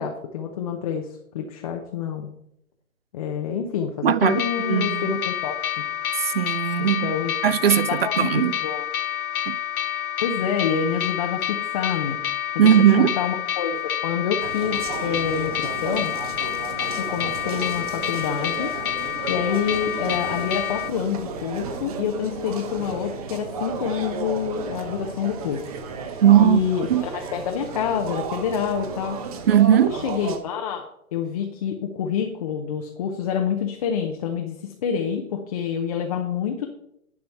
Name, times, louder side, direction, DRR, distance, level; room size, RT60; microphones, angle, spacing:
voice 1, 0.0-2.3 3.1-5.6 6.8-7.3 7.9-8.8 10.2-12.2 12.5-16.1 17.0-18.7 19.3-25.6 26.4-29.2 29.7-30.9 31.1-36.7, left 7 dB, 25° left, 0.7 m, -27 dB
voice 2, 4.0-5.1 6.2-7.1 7.4-8.6 9.5-9.6 12.6-13.2 26.2-27.1 29.5-29.9, right 10 dB, 45° right, 0.4 m, -19 dB
sound 1, 4.2-20.9, left 10 dB, 90° left, 0.7 m, -28 dB
sound 2, 14.4-30.4, right 5 dB, 25° right, 0.9 m, -34 dB
10.5 x 5.1 x 6.0 m
hypercardioid pair, 145°, 42 cm